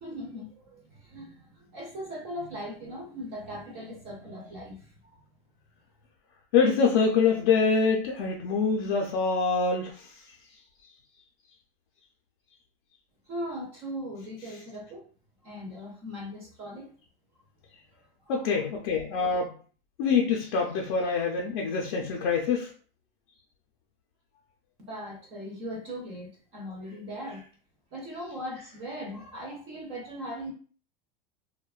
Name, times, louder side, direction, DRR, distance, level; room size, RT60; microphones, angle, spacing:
voice 1, 0.0-5.2 13.3-15.1 15.4-16.9 17.9-18.7 24.8-27.5 27.9-30.5, equal, 20° right, -1 dB, 0.4 m, -39 dB
voice 2, 6.5-9.9 18.3-19.5 20.0-22.7, left 5 dB, 45° left, -1 dB, 0.4 m, -25 dB
2.9 x 2.1 x 2.3 m, 0.41 s
supercardioid pair, 170°, 30 cm